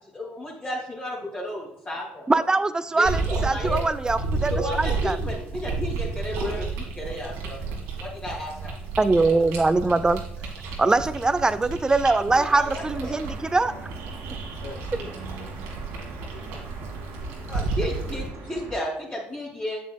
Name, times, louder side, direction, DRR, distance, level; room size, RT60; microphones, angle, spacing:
voice 1, 0.0-2.4 3.0-3.8 4.5-7.6 8.0-8.7 12.3-13.1 17.5-19.8, equal, 30° left, -6 dB, 2.4 m, -33 dB
voice 2, 2.3-4.5 4.8-5.2 9.0-10.2 10.8-13.7, right 3 dB, 15° right, 13 dB, 0.5 m, -22 dB
sound 1, 3.0-18.3, right 3 dB, 90° right, 1.8 m, -32 dB
sound 2, 12.7-18.8, right 3 dB, 70° right, 1.9 m, -41 dB
voice 3, 14.6-15.8 16.3-16.6 17.2-18.6, left 2 dB, 75° left, -1 dB, 1.3 m, -46 dB
8.0 x 7.4 x 2.3 m, 0.76 s
supercardioid pair, 80°, 4 cm